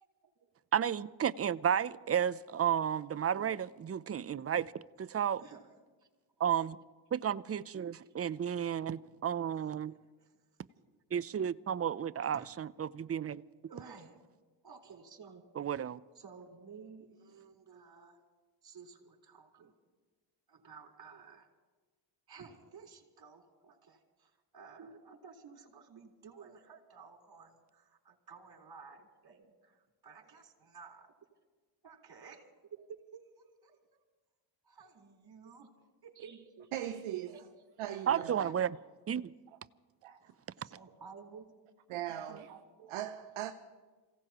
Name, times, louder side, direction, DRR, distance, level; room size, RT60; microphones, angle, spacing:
voice 1, 0.7-3.6 3.8-4.7 5.0-5.4 6.4-6.8 7.1-9.9 11.1-13.4 15.6-16.0 38.1-38.7 39.1-39.3, right 9 dB, 30° right, 0.6 m, -32 dB
voice 2, 5.4-5.7 9.6-9.7 10.0-10.1 12.0-12.5 13.2-14.2 14.6-15.4 16.1-18.2 18.6-19.7 20.5-21.5 22.3-31.1 31.8-33.8 34.6-35.7 36.0-36.7 37.3-37.4 38.4-38.5 40.6-41.6 42.3-42.5, right 5 dB, 50° right, 4.3 m, -53 dB
voice 3, 36.7-37.4 37.8-38.5 40.0-40.3 41.9-43.5, right 12 dB, 85° right, 0.8 m, -40 dB
27.5 x 17.0 x 3.0 m
supercardioid pair, 55°, 48 cm